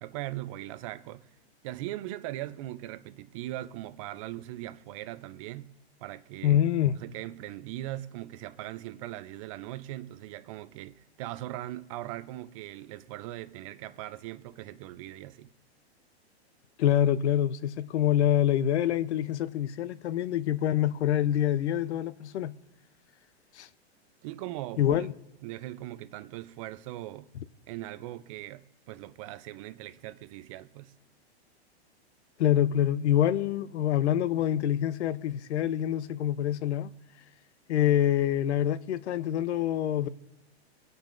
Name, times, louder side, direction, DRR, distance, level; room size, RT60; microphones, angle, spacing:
voice 1, 0.0-1.3 1.6-5.7 6.0-6.6 7.0-15.5 24.2-25.1 25.4-27.3 27.7-30.9, right 15 dB, 30° right, 0.4 m, -40 dB
voice 2, 6.4-6.9 16.8-22.5 23.5-23.7 24.8-25.1 32.4-36.9 37.7-40.1, left 11 dB, 80° left, 0.6 m, -26 dB
24.0 x 9.0 x 2.5 m
hypercardioid pair, 140°, 33 cm